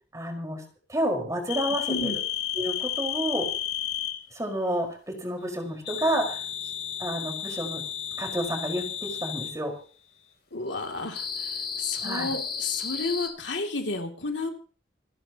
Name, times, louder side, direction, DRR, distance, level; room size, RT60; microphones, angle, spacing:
voice 1, 0.1-0.6 0.9-2.2 2.5-3.5 4.3-6.4 7.0-7.8 8.2-9.7 12.0-12.3, equal, 20° right, 2 dB, 4.9 m, -30 dB
sound 1, 1.5-4.2 5.9-9.6 11.1-13.3, left 9 dB, 55° left, 3.6 m, -32 dB
voice 2, 10.5-11.5 11.8-14.5, left 3 dB, 85° left, 3 dB, 2.7 m, -31 dB
28.0 x 11.0 x 3.0 m, 0.39 s
head